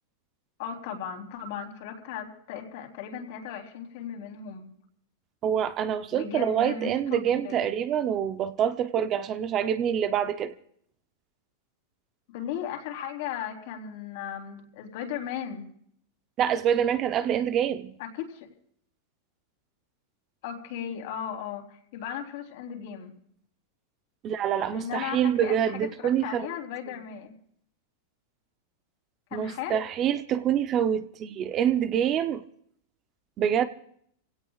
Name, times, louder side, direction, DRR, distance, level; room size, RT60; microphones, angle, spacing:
voice 1, 0.6-4.7 6.1-7.7 12.3-15.7 18.0-18.5 20.4-23.1 24.7-27.3 29.3-29.8, left 8 dB, 55° left, 3 dB, 3.4 m, -36 dB
voice 2, 5.4-10.5 16.4-17.9 24.2-26.5 29.3-32.4 33.4-33.7, right 9 dB, 30° right, 11 dB, 0.7 m, -26 dB
27.5 x 17.0 x 2.4 m, 0.64 s
supercardioid pair, 155°, 0 cm